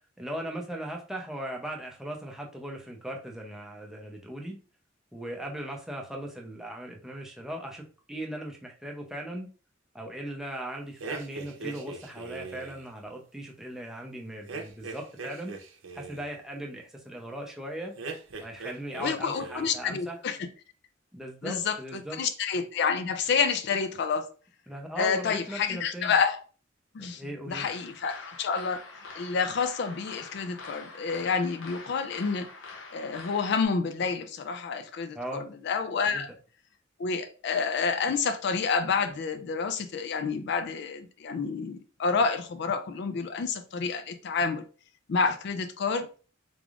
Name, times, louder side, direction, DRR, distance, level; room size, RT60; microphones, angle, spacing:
voice 1, 0.2-4.6 5.1-9.5 9.9-15.6 15.9-17.9 18.4-20.2 21.1-22.2 24.7-26.2 27.0-27.7 35.1-35.5 36.1-36.3, right 1 dB, 5° right, 0.6 m, -38 dB
sound 1, 11.0-12.8 14.5-16.3 18.0-19.1 19.3-19.9, right 4 dB, 90° right, 0.7 m, -40 dB
voice 2, 19.0-20.5 21.4-21.8 22.2-24.3 25.0-26.4 26.9-28.8 29.2-32.5 32.9-36.3 37.0-44.6 45.1-46.1, left 5 dB, 60° left, 0.4 m, -29 dB
sound 2, 27.5-33.6, left 4 dB, 80° left, 0.7 m, -45 dB
3.6 x 3.4 x 2.4 m
head